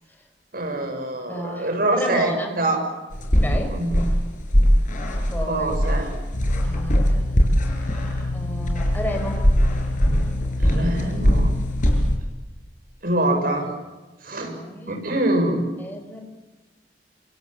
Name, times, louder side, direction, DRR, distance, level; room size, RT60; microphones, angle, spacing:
voice 1, 0.5-2.8 3.7-4.0 5.5-6.1 7.6-8.1 10.6-11.5 13.0-13.7 14.2-14.5 14.9-15.6, right 1 dB, 55° right, 4 dB, 7.0 m, -24 dB
voice 2, 1.3-2.6 3.4-3.8 5.3-5.7 6.6-7.4 8.3-9.4 14.4-15.0 15.8-16.3, equal, 10° left, 4 dB, 5.6 m, -32 dB
sound 1, 3.1-12.2, equal, 50° left, 6.3 m, -21 dB
sound 2, 6.3-12.2, left 2 dB, 70° left, 1.9 m, -29 dB
27.5 x 26.5 x 7.5 m, 1.2 s
head